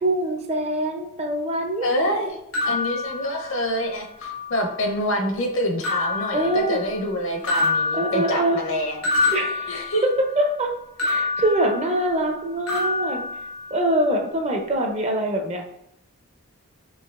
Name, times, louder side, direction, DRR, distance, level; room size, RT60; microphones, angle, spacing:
voice 1, 0.0-1.9 6.3-6.8 7.9-8.6 9.3-9.8 10.4-10.7 11.0-13.2 13.7-15.8, right 1 dB, 30° right, 3 dB, 0.4 m, -24 dB
voice 2, 1.8-2.4 2.6-9.0 9.7-10.0, equal, 60° left, 3 dB, 0.7 m, -26 dB
sound 1, 2.5-3.8 4.2-5.0 5.8-7.1 7.4-10.4 11.0-12.4 12.7-14.0, left 3 dB, 90° left, 1.4 m, -27 dB
4.6 x 2.8 x 2.3 m, 0.76 s
head